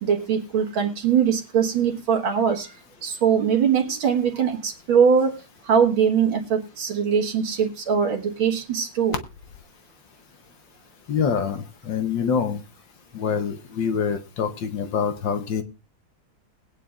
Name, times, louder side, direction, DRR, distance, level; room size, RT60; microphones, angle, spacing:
voice 1, 0.0-2.8 3.0-9.2, right 7 dB, 75° right, 3 dB, 2.3 m, -22 dB
voice 2, 11.1-12.6 13.1-15.6, left 6 dB, 65° left, 8 dB, 1.7 m, -25 dB
20.5 x 9.2 x 2.5 m, 0.29 s
omnidirectional pair, 2.3 m